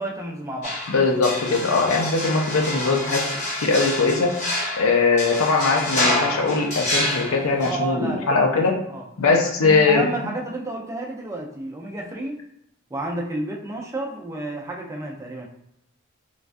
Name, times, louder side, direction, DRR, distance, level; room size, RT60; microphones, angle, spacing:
voice 1, 0.0-0.8 7.6-8.6 8.9-9.0 9.6-12.4 12.9-15.5, right 2 dB, 15° right, -1 dB, 0.4 m, -31 dB
sound 1, 0.6-7.7, left 1 dB, 35° left, 0.9 m, -27 dB
voice 2, 0.9-3.3 3.6-4.3 4.8-8.8 9.2-10.1, left 4 dB, 90° left, 2 dB, 0.5 m, -20 dB
3.2 x 2.3 x 2.5 m, 0.75 s
head